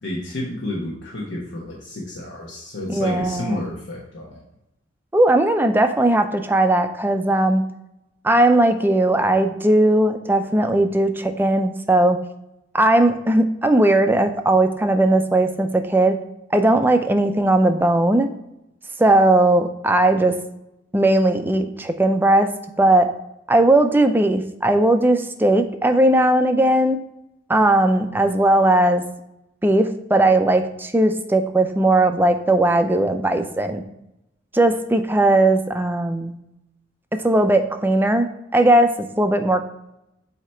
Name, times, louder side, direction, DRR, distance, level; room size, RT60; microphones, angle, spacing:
voice 1, 0.0-4.4, left 1 dB, 70° left, -3 dB, 1.1 m, -30 dB
voice 2, 2.9-3.6 5.1-7.6 8.2-12.2 12.7-16.2 16.5-18.3 19.0-20.3 20.9-22.5 22.8-23.1 23.5-27.0 27.5-29.0 29.6-33.8 34.5-36.3 37.2-39.6, right 1 dB, 10° right, 7 dB, 0.4 m, -18 dB
8.1 x 2.9 x 4.4 m, 0.87 s
head